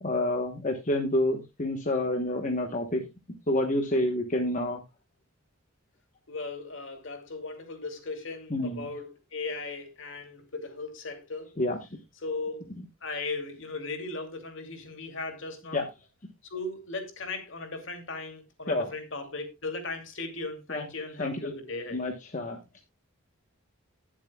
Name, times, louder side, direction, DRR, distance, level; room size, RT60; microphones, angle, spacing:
voice 1, 0.0-3.0 3.5-4.8 8.5-8.9 11.6-11.8 15.7-15.9 18.7-18.9 20.7-20.8 21.2-21.5 21.9-22.6, left 1 dB, 35° left, 4 dB, 1.1 m, -28 dB
voice 2, 6.3-11.5 12.2-12.6 13.0-15.8 16.5-22.0, left 3 dB, 60° left, 5 dB, 2.6 m, -37 dB
18.5 x 7.4 x 2.3 m, 0.23 s
head